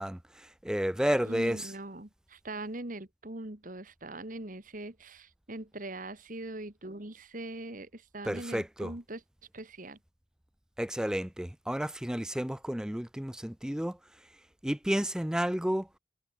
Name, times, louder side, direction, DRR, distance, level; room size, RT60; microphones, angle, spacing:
voice 1, 0.0-1.7 8.3-8.9 10.8-14.0 14.6-15.9, equal, 5° right, 0.4 m, -31 dB
voice 2, 1.1-9.2 9.5-10.0, right 2 dB, 45° right, 2.0 m, -41 dB
head